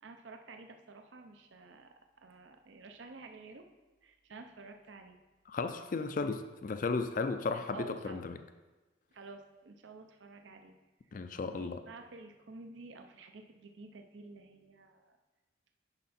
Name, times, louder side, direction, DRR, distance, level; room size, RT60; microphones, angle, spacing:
voice 1, 0.0-3.7 4.0-5.2 7.5-8.2 9.1-10.8 11.5-15.2, right 3 dB, 75° right, 5 dB, 0.7 m, -51 dB
voice 2, 5.5-8.4 11.1-11.8, left 4 dB, 45° left, 9 dB, 0.4 m, -35 dB
9.9 x 5.6 x 4.2 m, 1.2 s
head